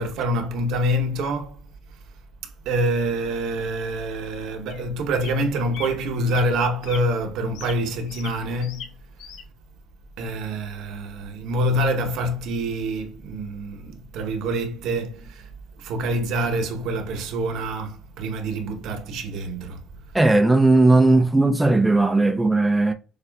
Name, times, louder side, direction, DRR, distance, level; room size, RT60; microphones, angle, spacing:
voice 1, 0.0-1.6 2.7-8.8 10.2-15.5 15.8-19.8, right 1 dB, 70° right, 0.9 m, -26 dB
sound 1, 3.0-3.1 3.9-4.0 4.7-4.8 5.2-5.5 5.7-5.9 6.2-6.4 6.8-7.0 7.5-8.9 9.2-9.4, left 7 dB, 75° left, 0.8 m, -40 dB
voice 2, 20.1-22.9, right 2 dB, 5° right, 0.3 m, -17 dB
6.6 x 2.5 x 2.2 m
cardioid pair, 155°, 0 cm